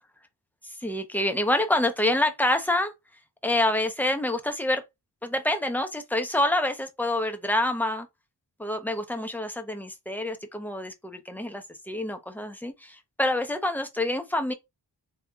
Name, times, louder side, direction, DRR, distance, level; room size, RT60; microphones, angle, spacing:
voice 1, 0.6-2.9 3.4-4.8 5.2-8.1 8.6-14.5, left 1 dB, 5° left, 0.7 m, -27 dB
3.5 x 2.8 x 2.3 m
cardioid pair, 50°, 43 cm